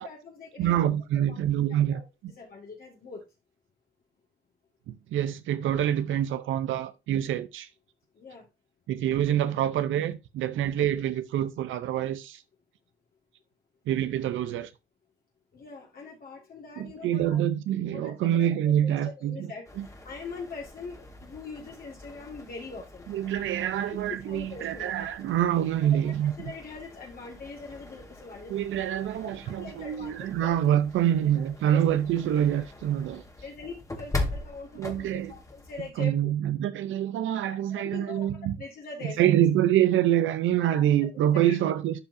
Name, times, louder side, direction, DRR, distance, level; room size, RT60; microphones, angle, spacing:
voice 1, 0.0-1.4 1.7-3.2 8.1-8.5 15.5-17.4 17.9-23.1 23.9-24.9 25.9-28.6 28.9-29.0 29.5-30.6 31.0-31.8 33.4-36.3 37.7-38.3 38.6-39.3 40.7-41.6, left 4 dB, 50° left, 2.0 m, -43 dB
voice 2, 0.6-2.0 4.9-7.7 8.9-12.4 13.9-14.7 16.8-19.5 19.8-19.9 23.1-26.3 28.5-33.2 34.8-35.3 36.0-38.6 39.2-42.0, right 11 dB, 80° right, 0.7 m, -26 dB
sound 1, 19.6-35.9, left 2 dB, 15° left, 1.7 m, -41 dB
12.0 x 4.6 x 2.7 m
cardioid pair, 90°, 20 cm